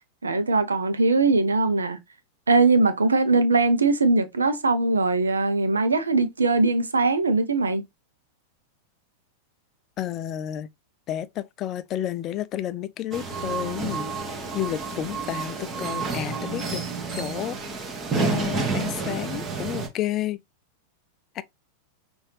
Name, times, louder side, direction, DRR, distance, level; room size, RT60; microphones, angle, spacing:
voice 1, 0.2-2.0 2.5-7.8, right 3 dB, 75° right, 0.7 m, -21 dB
voice 2, 10.0-10.7 11.1-16.8 17.1-20.4 21.3-21.4, left 12 dB, 35° left, 0.4 m, -31 dB
sound 1, 13.1-19.9, right 4 dB, 25° right, 1.1 m, -30 dB
5.6 x 2.6 x 3.1 m
figure-of-eight pair, 90°, 0 cm